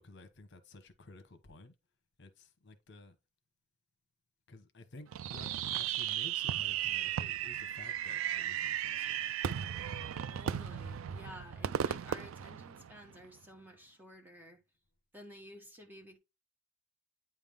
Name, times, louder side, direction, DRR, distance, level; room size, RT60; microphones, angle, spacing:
voice 1, 0.0-1.7 2.2-3.1 4.5-9.5 9.8-10.0 11.6-11.7, left 2 dB, 60° left, 1.0 m, -53 dB
Fireworks, 5.1-13.3, right 10 dB, 80° right, 0.4 m, -36 dB
voice 2, 10.3-14.6 15.1-16.2, equal, 10° right, 1.3 m, -52 dB
9.0 x 3.5 x 3.5 m
head